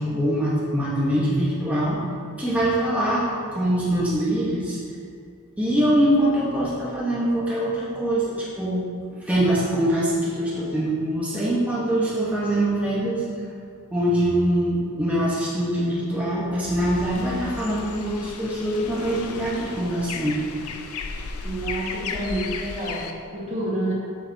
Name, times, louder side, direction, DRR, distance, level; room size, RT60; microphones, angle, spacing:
voice 1, 0.0-2.0 2.4-4.8 5.6-8.8 9.2-13.2 13.9-20.4, right 1 dB, 5° right, -8 dB, 1.0 m, -23 dB
sound 1, 16.8-23.1, left 4 dB, 80° left, 0.5 m, -35 dB
voice 2, 21.4-23.9, right 1 dB, 30° right, -6 dB, 1.6 m, -29 dB
7.4 x 6.5 x 2.7 m, 2.2 s
head